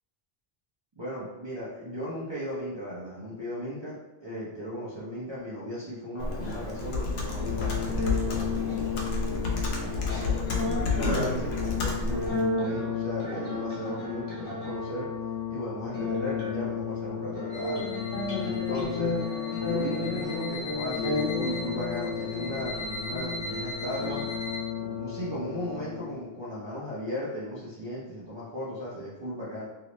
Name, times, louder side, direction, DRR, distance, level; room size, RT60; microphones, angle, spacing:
voice 1, 1.0-3.9 4.2-10.4 11.0-15.1 15.5-17.9 18.4-19.1 19.6-24.2 24.7-29.7, equal, 30° right, -9 dB, 0.7 m, -36 dB
Computer keyboard, 6.2-12.4, left 3 dB, 90° left, 1.0 m, -30 dB
sound 1, 7.4-26.3, left 5 dB, 25° left, 0.8 m, -32 dB
sound 2, 17.5-24.6, left 2 dB, 55° left, 1.0 m, -40 dB
3.0 x 2.9 x 3.0 m, 1.1 s
omnidirectional pair, 1.0 m